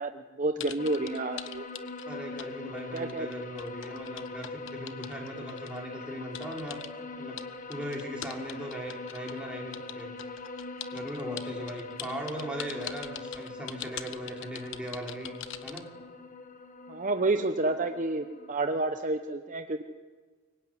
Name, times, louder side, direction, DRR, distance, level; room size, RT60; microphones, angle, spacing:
voice 1, 0.0-1.6 2.9-3.3 16.9-19.8, right 2 dB, 35° right, 7 dB, 0.9 m, -30 dB
sound 1, 0.6-2.5 2.8-5.8 6.3-6.9 7.4-9.4 9.7-15.9, left 10 dB, 60° left, 1.3 m, -42 dB
sound 2, 0.8-18.5, left 3 dB, 40° left, 1.5 m, -42 dB
voice 2, 2.1-6.8 7.2-7.4 7.7-10.1 10.9-15.8, equal, 5° right, -2 dB, 5.5 m, -39 dB
25.0 x 23.0 x 9.8 m, 1.5 s
head